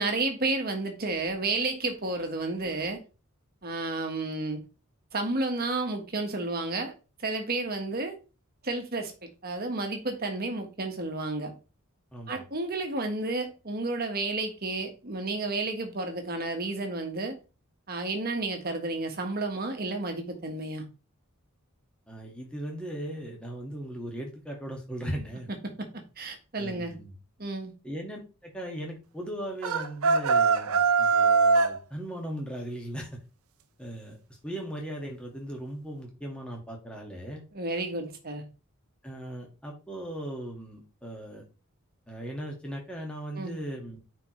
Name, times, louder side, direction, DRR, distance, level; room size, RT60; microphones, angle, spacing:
voice 1, 0.0-3.0 3.6-4.6 5.1-6.9 7.2-8.2 8.6-11.5 12.3-17.4 17.9-20.8 25.5-26.9 27.4-27.7 37.5-38.4 43.3-43.5, right 2 dB, 45° right, 1.5 m, -31 dB
voice 2, 12.1-12.4 22.1-25.5 26.6-27.1 27.8-33.1 33.8-34.2 34.4-37.4 39.0-41.4 42.1-44.0, right 1 dB, 5° left, 1.9 m, -38 dB
sound 1, 29.6-31.8, right 4 dB, 75° right, 0.6 m, -22 dB
9.2 x 4.6 x 3.2 m
head